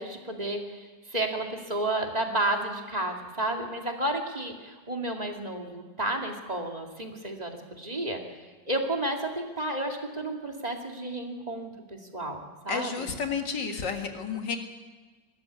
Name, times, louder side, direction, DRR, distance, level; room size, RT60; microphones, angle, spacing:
voice 1, 0.0-12.4 12.6-13.1, right 1 dB, 20° right, 2 dB, 2.4 m, -32 dB
voice 2, 12.7-14.6, left 6 dB, 70° left, 4 dB, 2.5 m, -31 dB
21.0 x 13.5 x 9.4 m, 1.3 s
omnidirectional pair, 2.0 m